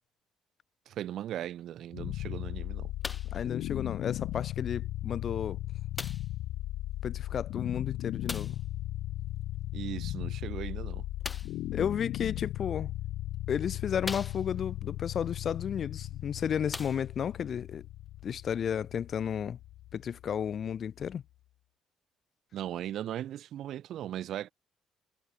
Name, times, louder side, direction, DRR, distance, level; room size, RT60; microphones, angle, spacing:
voice 1, 0.9-2.9 9.7-11.0 22.5-24.5, right 11 dB, 60° right, 3.4 m, -38 dB
sound 1, 1.9-21.0, left 15 dB, 80° left, 2.9 m, -37 dB
sound 2, 3.0-3.4 4.3-4.4 6.0-6.4 8.3-8.7 11.2-11.6 12.6-12.7 13.3-13.4 14.0-14.7 16.0-16.1 16.6-17.4 18.2-18.3, left 3 dB, 15° left, 1.8 m, -40 dB
voice 2, 3.3-5.6 7.0-8.6 11.7-12.9 13.5-17.8 18.2-19.6 19.9-21.2, left 8 dB, 45° left, 2.0 m, -33 dB
cardioid pair, 140°, 0 cm